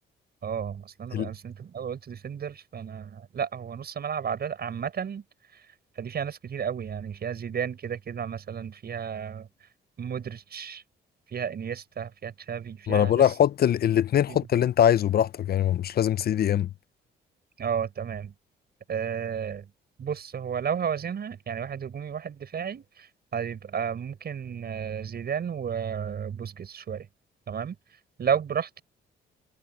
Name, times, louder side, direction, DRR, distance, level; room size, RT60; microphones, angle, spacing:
voice 1, 0.4-5.2 6.0-9.5 10.0-10.8 11.3-13.2 14.3-14.5 17.6-18.3 18.9-19.7 20.0-27.1 27.5-27.8 28.2-28.8, right 7 dB, 55° right, 6.6 m, -32 dB
voice 2, 12.9-16.7, left 10 dB, 50° left, 0.5 m, -22 dB
cardioid pair, 90°, 20 cm